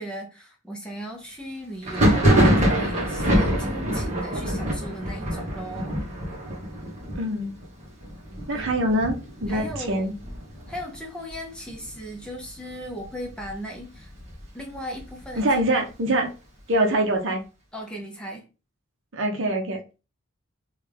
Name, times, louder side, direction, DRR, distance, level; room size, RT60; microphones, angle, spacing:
voice 1, 0.0-6.0 8.5-8.7 9.5-10.1 10.7-14.1 14.5-15.5 17.7-18.4, equal, 5° left, 0.6 m, -36 dB
Thunder, 1.8-11.3 11.6-12.3 12.5-13.5 13.9-15.6, equal, 30° right, 1.1 m, -25 dB
voice 2, 7.2-7.5 8.5-9.6 9.9-10.1 15.4-16.3 16.7-17.4 19.1-19.8, right 1 dB, 65° right, 0.7 m, -24 dB
3.3 x 2.3 x 3.3 m
head